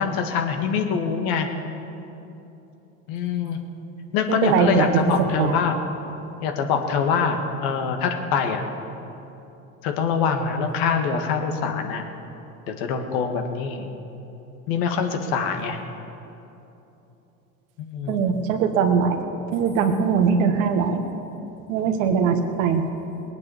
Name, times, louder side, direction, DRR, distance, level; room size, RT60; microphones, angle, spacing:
voice 1, 0.0-1.5 3.1-3.6 4.1-5.8 6.4-8.7 9.8-12.0 12.7-13.9 14.7-15.8 17.8-18.2, left 6 dB, 60° left, 5 dB, 1.9 m, -24 dB
voice 2, 4.4-4.9 5.4-5.5 18.1-19.2 19.5-21.0 21.7-22.8, right 6 dB, 70° right, 6 dB, 1.7 m, -21 dB
19.5 x 9.2 x 7.2 m, 2.9 s
hypercardioid pair, 80°, 41 cm